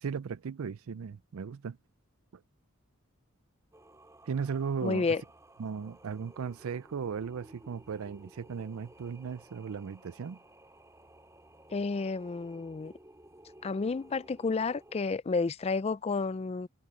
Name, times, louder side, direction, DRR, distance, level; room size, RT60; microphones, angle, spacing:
voice 1, 0.0-1.8 4.3-5.1 5.6-10.4, right 6 dB, 75° right, 0.4 m, -36 dB
Singing, 3.7-15.0, right 1 dB, 15° right, 3.8 m, -56 dB
voice 2, 4.8-5.2 11.7-12.9 13.6-16.7, left 4 dB, 30° left, 0.3 m, -31 dB
head